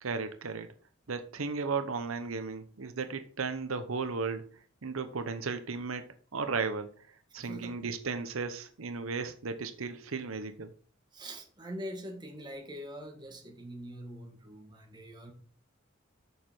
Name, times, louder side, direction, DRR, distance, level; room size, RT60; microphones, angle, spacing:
voice 1, 0.0-0.7 1.1-4.4 4.8-6.1 6.3-6.9 7.3-10.7, right 4 dB, 85° right, 9 dB, 0.8 m, -35 dB
voice 2, 7.4-7.8 11.1-15.3, equal, 20° right, 2 dB, 1.6 m, -43 dB
7.4 x 6.6 x 4.6 m, 0.44 s
head